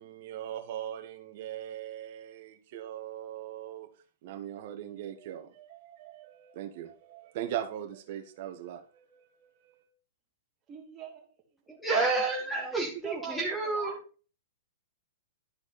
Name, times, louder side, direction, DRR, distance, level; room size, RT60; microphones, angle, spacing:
voice 1, 0.0-3.9 4.2-9.9, right 11 dB, 50° right, 1.4 m, -40 dB
voice 2, 10.7-11.6 12.9-14.0, right 8 dB, 25° right, 2.6 m, -42 dB
voice 3, 11.7-14.0, right 3 dB, 5° left, 1.9 m, -29 dB
11.5 x 4.9 x 4.2 m
hypercardioid pair, 135°, 0 cm